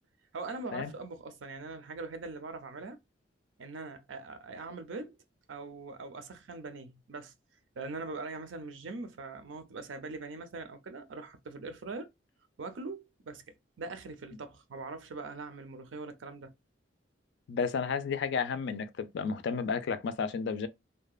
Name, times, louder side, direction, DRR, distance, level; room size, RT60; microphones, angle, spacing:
voice 1, 0.3-3.0 3.6-5.2 5.5-7.3 7.7-12.1 12.6-13.4 13.8-16.5, right 3 dB, 85° right, 0.5 m, -42 dB
voice 2, 17.5-20.7, left 5 dB, 65° left, 0.4 m, -32 dB
2.8 x 2.1 x 2.3 m
head